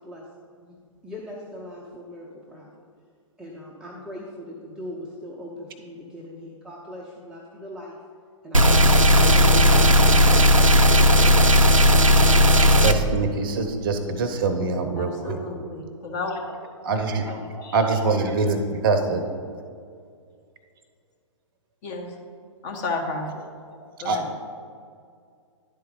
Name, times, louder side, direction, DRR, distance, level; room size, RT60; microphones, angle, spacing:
voice 1, 1.0-2.7 3.4-7.9, left 1 dB, 5° right, 0.6 m, -40 dB
sound 1, 8.5-12.9, left 1 dB, 90° right, 0.5 m, -15 dB
voice 2, 12.6-15.4 16.8-17.4 17.7-19.2 24.0-24.3, right 3 dB, 45° right, 0.7 m, -24 dB
voice 3, 15.0-16.6 17.3-17.8 21.8-22.1 22.6-23.3 24.0-24.2, left 3 dB, 35° left, 1.2 m, -32 dB
10.5 x 4.3 x 3.8 m
figure-of-eight pair, 120°, 17 cm